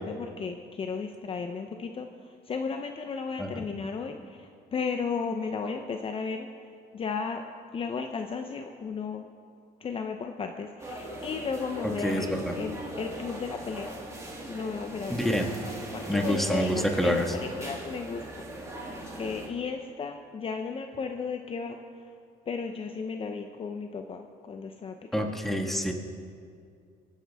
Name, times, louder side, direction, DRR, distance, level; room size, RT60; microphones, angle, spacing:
voice 1, 0.1-6.5 6.9-7.4 7.7-9.3 9.8-13.9 14.5-15.2 15.9-18.4 18.8-18.9 19.2-21.8 22.5-25.4, left 5 dB, 35° left, 5 dB, 0.7 m, -34 dB
sound 1, 10.8-19.5, right 1 dB, 20° right, 2.5 m, -40 dB
voice 2, 12.0-12.5 15.1-15.5 16.1-17.3 25.1-25.9, equal, ahead, 2 dB, 1.6 m, -27 dB
23.5 x 10.0 x 3.5 m, 2.3 s
cardioid pair, 110°, 17 cm